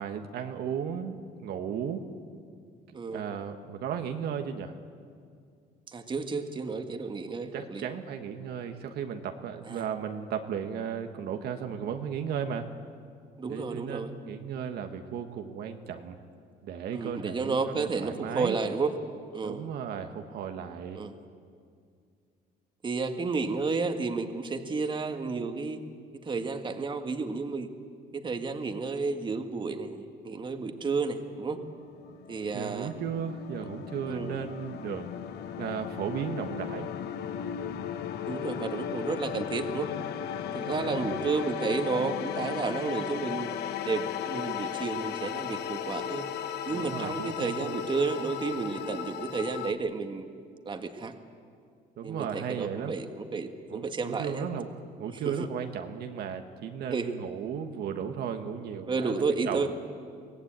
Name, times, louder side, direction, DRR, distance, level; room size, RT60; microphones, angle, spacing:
voice 1, 0.0-2.0 3.1-4.8 7.5-12.7 13.5-16.2 16.6-18.5 19.4-21.0 32.5-35.1 35.6-36.9 40.6-41.2 46.7-47.8 52.0-52.9 53.7-54.7 55.0-59.7, right 7 dB, 70° right, 5 dB, 1.4 m, -35 dB
voice 2, 2.9-3.3 5.9-7.9 9.6-9.9 13.4-14.1 16.9-18.9 19.3-19.7 21.0-21.1 22.8-25.8 26.2-27.7 28.1-31.6 32.3-32.9 33.6-33.7 34.1-34.3 38.3-39.9 40.5-43.5 43.8-46.3 46.7-50.3 50.7-51.1 52.0-54.4 55.1-55.5 56.9-57.1 58.9-59.7, right 4 dB, 30° right, 6 dB, 1.8 m, -31 dB
sound 1, 31.4-49.7, left 9 dB, 75° left, 1.2 m, -36 dB
23.5 x 17.5 x 8.9 m, 2.2 s
cardioid pair, 110°, 17 cm